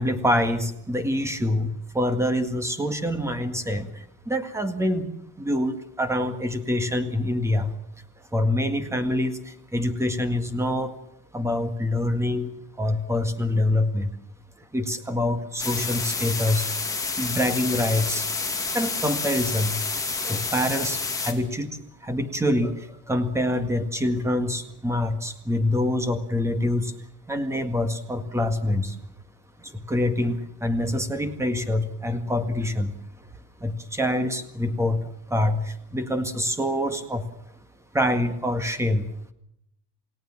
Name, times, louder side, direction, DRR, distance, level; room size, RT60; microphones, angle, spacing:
voice 1, 0.0-5.1 5.4-7.8 8.3-10.9 11.3-14.1 14.6-16.7 17.2-18.3 18.7-19.8 20.2-29.0 29.6-33.3 33.6-37.5 37.9-39.3, left 1 dB, 5° right, 9 dB, 1.9 m, -26 dB
sound 1, 15.6-21.3, left 4 dB, 10° left, 2.8 m, -29 dB
29.0 x 17.5 x 7.4 m, 0.78 s
cardioid pair, 175°, 37 cm